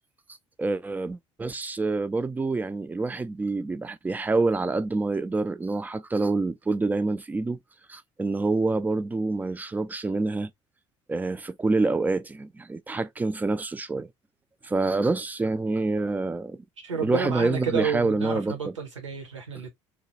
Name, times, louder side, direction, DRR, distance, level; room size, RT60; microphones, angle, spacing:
voice 1, 0.6-7.6 7.9-10.5 11.1-14.1 14.6-16.6 16.9-18.8, right 3 dB, 10° right, 0.3 m, -27 dB
voice 2, 16.8-19.7, right 5 dB, 80° right, 0.8 m, -30 dB
3.0 x 2.2 x 2.8 m
figure-of-eight pair, 55°, 16 cm